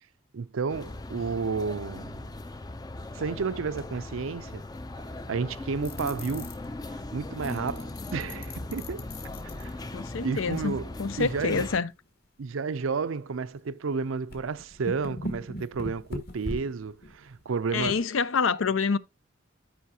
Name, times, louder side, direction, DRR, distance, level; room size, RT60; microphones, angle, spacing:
voice 1, 0.3-2.3 3.1-4.6 5.3-6.5 6.9-9.1 9.6-10.9 11.2-11.6 12.4-18.0, right 5 dB, 80° right, 0.5 m, -32 dB
sound 1, 0.7-11.8, left 2 dB, 20° left, 0.4 m, -39 dB
sound 2, 5.8-6.6 7.4-9.7 11.4-11.5 11.9-12.0 13.1-13.2 13.5-13.6 14.3-18.0, left 1 dB, 50° left, 2.2 m, -39 dB
voice 2, 9.9-11.9 17.7-19.0, left 5 dB, 80° left, 0.6 m, -27 dB
12.5 x 5.6 x 2.8 m
head